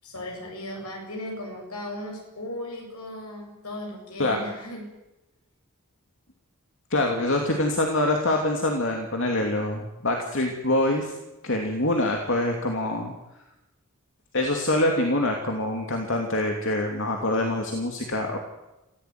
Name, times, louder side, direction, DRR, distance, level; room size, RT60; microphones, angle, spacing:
voice 1, 0.0-4.9, left 1 dB, 85° left, 1 dB, 7.7 m, -37 dB
voice 2, 6.9-11.1 11.4-13.1 14.3-18.4, left 1 dB, 60° left, 2 dB, 2.9 m, -25 dB
26.0 x 16.0 x 9.6 m, 1.0 s
head